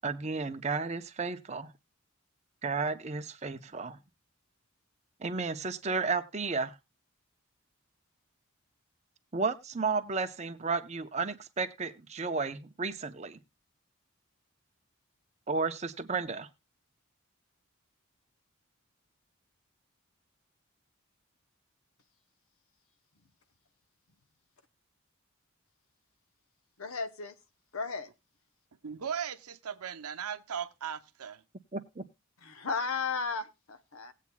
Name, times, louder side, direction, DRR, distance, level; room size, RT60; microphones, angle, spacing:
voice 1, 0.0-1.7 2.6-4.0 5.2-6.7 9.3-13.4 15.5-16.5 31.7-32.0, right 4 dB, 30° right, 0.7 m, -33 dB
voice 2, 26.8-27.4 27.7-28.1 32.4-34.1, left 4 dB, 75° left, 0.9 m, -34 dB
voice 3, 28.8-31.4, right 8 dB, 85° right, 0.7 m, -37 dB
19.0 x 8.3 x 2.2 m
head